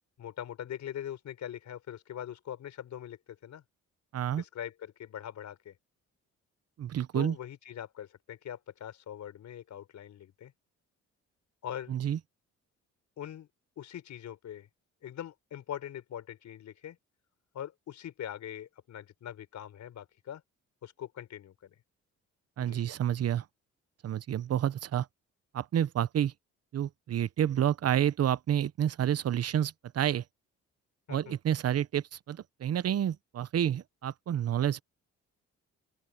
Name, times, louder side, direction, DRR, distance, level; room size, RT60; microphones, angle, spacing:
voice 1, 0.2-3.6 4.3-5.7 7.1-10.5 11.6-12.0 13.2-13.5 13.8-14.7 15.0-17.0 17.5-20.4 20.8-21.7 22.6-22.8 31.1-31.3, left 10 dB, 70° left, 4.2 m, -42 dB
voice 2, 4.1-4.4 6.8-7.4 11.9-12.2 22.6-23.4 24.0-25.1 25.5-26.3 26.7-30.2 31.1-34.8, right 10 dB, 55° right, 0.9 m, -29 dB
open air
cardioid pair, 90°, 30 cm